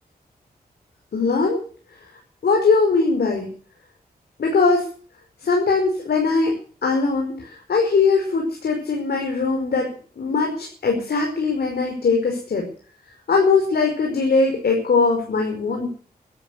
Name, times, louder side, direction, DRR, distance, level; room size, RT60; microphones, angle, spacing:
voice 1, 1.1-1.6 2.4-3.5 4.4-4.9 5.4-6.5 6.8-12.7 13.3-15.9, left 4 dB, 75° left, 2 dB, 5.2 m, -20 dB
15.0 x 13.0 x 6.6 m, 0.44 s
wide cardioid pair, 115°, 16 cm